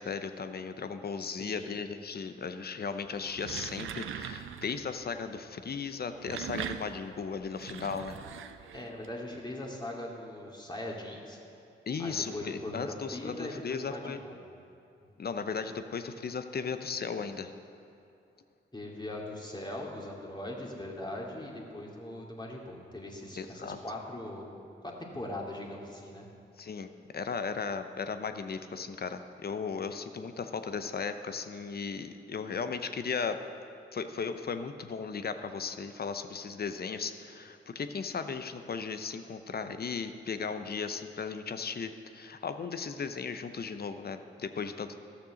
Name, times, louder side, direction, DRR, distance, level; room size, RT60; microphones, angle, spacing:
voice 1, 0.0-8.2 11.9-14.2 15.2-17.5 23.4-23.8 26.6-26.9 27.1-33.4 33.9-45.0, left 5 dB, 50° left, 9 dB, 0.8 m, -36 dB
voice 2, 1.2-1.6 8.7-11.4 12.0-14.4 18.7-24.5 24.8-26.3, left 1 dB, 20° left, -2 dB, 2.5 m, -40 dB
sound 1, 3.1-4.8 6.0-9.1, right 9 dB, 80° right, 0.5 m, -41 dB
12.5 x 6.8 x 6.4 m, 2.5 s
supercardioid pair, 50°, 20 cm